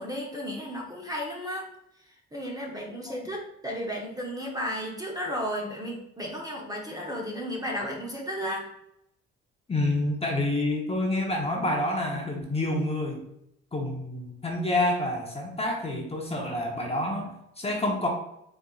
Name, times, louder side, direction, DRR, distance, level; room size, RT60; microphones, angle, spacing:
voice 1, 0.0-1.7 2.3-8.7, equal, 10° right, -1 dB, 0.9 m, -33 dB
voice 2, 9.7-13.2 13.7-18.1, left 1 dB, 20° left, 0 dB, 0.9 m, -28 dB
4.1 x 3.4 x 2.4 m, 0.78 s
cardioid pair, 90°, 30 cm